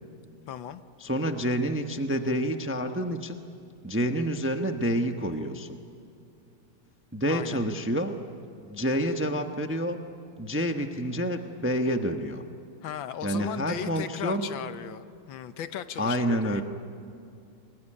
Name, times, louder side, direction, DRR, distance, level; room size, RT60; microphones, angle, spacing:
voice 1, 0.5-0.8 7.3-7.6 12.8-16.6, left 10 dB, 70° left, 12 dB, 1.5 m, -37 dB
voice 2, 1.0-3.3 3.8-5.8 7.1-8.2 8.6-10.0 10.4-12.4 13.2-14.4 16.0-16.6, equal, 10° right, 5 dB, 0.6 m, -28 dB
28.0 x 21.0 x 10.0 m, 2.5 s
omnidirectional pair, 2.2 m